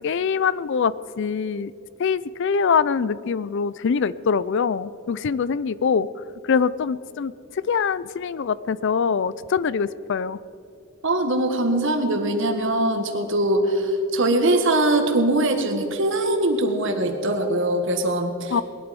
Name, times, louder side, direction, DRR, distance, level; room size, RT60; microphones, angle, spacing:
voice 1, 0.0-1.7 2.0-6.1 6.4-7.3 7.6-10.4 18.5-18.6, left 6 dB, 60° left, 18 dB, 0.4 m, -23 dB
voice 2, 11.0-18.6, right 1 dB, 65° right, 5 dB, 1.7 m, -22 dB
19.5 x 11.5 x 5.3 m, 2.5 s
head